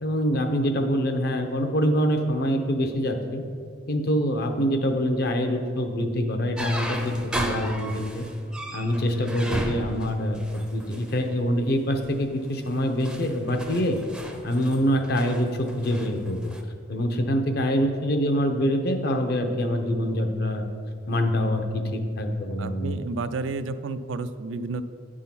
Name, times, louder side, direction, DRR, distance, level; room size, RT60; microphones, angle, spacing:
voice 1, 0.0-3.4 3.9-8.2 8.7-10.4 10.7-14.0 14.4-16.5 16.9-20.6 21.1-23.0, equal, 55° left, 6 dB, 0.7 m, -25 dB
sound 1, 6.6-11.2 11.9-12.2 12.7-16.6, equal, 5° right, 0.5 m, -35 dB
voice 2, 22.6-24.8, right 3 dB, 85° right, 11 dB, 0.4 m, -31 dB
9.3 x 3.7 x 5.8 m, 2.2 s
head